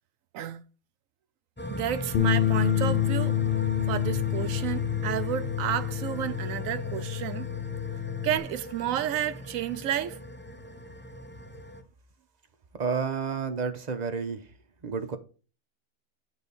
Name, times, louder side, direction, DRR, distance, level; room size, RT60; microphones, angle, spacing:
sound 1, 1.6-11.8, left 1 dB, 10° left, 0.7 m, -38 dB
voice 1, 1.7-3.4 3.9-7.5 8.2-10.2, right 11 dB, 85° right, 1.0 m, -31 dB
Bass guitar, 2.1-8.4, left 11 dB, 60° left, 0.6 m, -28 dB
voice 2, 12.7-14.4 14.8-15.2, right 5 dB, 35° right, 0.9 m, -30 dB
8.7 x 4.2 x 4.1 m
omnidirectional pair, 1.4 m